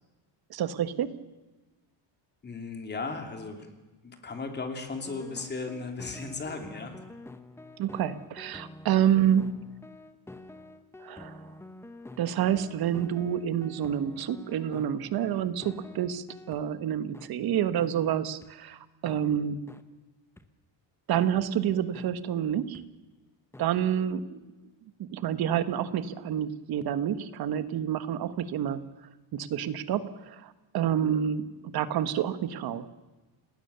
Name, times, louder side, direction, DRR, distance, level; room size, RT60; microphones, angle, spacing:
voice 1, 0.5-1.2 7.8-9.7 11.0-11.5 12.2-19.7 21.1-22.9 23.6-24.4 25.1-28.8 29.3-32.9, right 9 dB, 50° right, 12 dB, 1.4 m, -28 dB
voice 2, 2.4-3.7 4.0-7.0, left 4 dB, 20° left, 5 dB, 2.9 m, -36 dB
sound 1, 5.0-16.6 17.1-17.3 17.8-17.9 18.4-18.5 19.0-19.2 19.7-19.8 20.4-20.5 21.2-21.3 21.9-22.1 22.7-22.8 23.5-23.7, left 2 dB, 5° left, 0.9 m, -47 dB
29.0 x 19.5 x 6.9 m, 1.2 s
cardioid pair, 165°, 46 cm